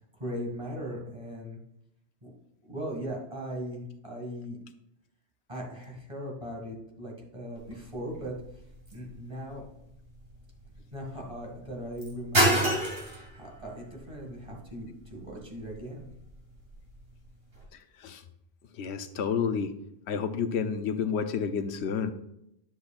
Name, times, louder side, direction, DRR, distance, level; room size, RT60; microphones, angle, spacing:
voice 1, 0.1-1.6 2.2-2.3 2.6-4.6 5.5-8.3 8.9-9.6 10.9-12.7 13.3-16.1, equal, 30° right, -2 dB, 2.0 m, -38 dB
sound 1, 7.6-17.6, right 1 dB, 60° right, 2.5 m, -33 dB
voice 2, 18.8-19.7 20.1-22.1, left 6 dB, 80° left, 9 dB, 0.9 m, -30 dB
10.0 x 7.5 x 2.4 m, 0.80 s
omnidirectional pair, 1.1 m